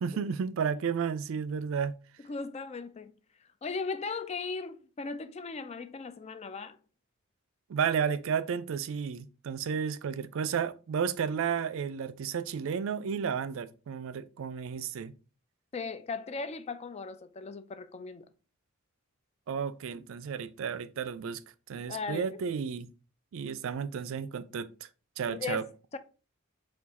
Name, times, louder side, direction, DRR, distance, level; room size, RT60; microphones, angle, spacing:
voice 1, 0.0-1.9 7.7-15.1 19.5-21.4 21.7-22.9 23.3-24.7 25.2-25.6, right 6 dB, 65° right, 0.4 m, -32 dB
voice 2, 2.2-3.1 3.6-6.8 15.7-18.3 21.9-22.4 25.3-26.0, left 4 dB, 30° left, 0.4 m, -37 dB
4.5 x 2.4 x 4.1 m
head